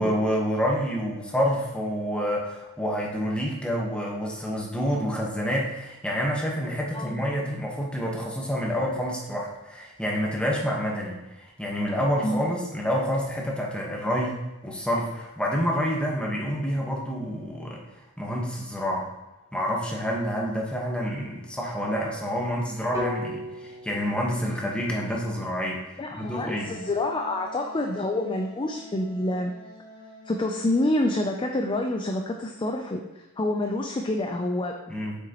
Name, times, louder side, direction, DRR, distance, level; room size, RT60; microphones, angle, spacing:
voice 1, 0.0-14.4 14.6-17.8 18.2-19.0 19.5-25.8 26.1-26.7 34.9-35.2, equal, 5° left, -2 dB, 1.2 m, -28 dB
sound 1, 22.9-27.0, left 2 dB, 15° right, 1.3 m, -38 dB
voice 2, 26.0-29.5 30.2-35.0, left 1 dB, 25° left, 3 dB, 0.4 m, -27 dB
Wind instrument woodwind instrument, 26.2-31.8, right 1 dB, 55° left, 1.6 m, -45 dB
7.8 x 5.9 x 3.0 m, 1.0 s
head